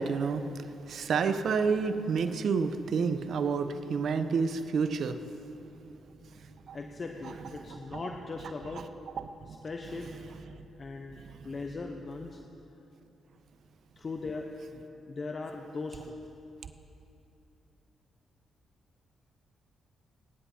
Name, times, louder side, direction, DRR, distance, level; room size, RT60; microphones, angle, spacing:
voice 1, 0.0-5.4 6.4-6.8 7.2-7.3 7.7-8.0 8.4-8.8 9.2-9.3 10.5-10.7 11.2-11.4 16.6-16.7, right 5 dB, 65° right, 10 dB, 0.6 m, -30 dB
voice 2, 6.7-8.9 9.6-10.1 10.8-12.4 14.0-16.1, left 3 dB, 45° left, 3 dB, 0.8 m, -39 dB
22.5 x 9.9 x 2.8 m, 2.8 s
supercardioid pair, 50°, 0 cm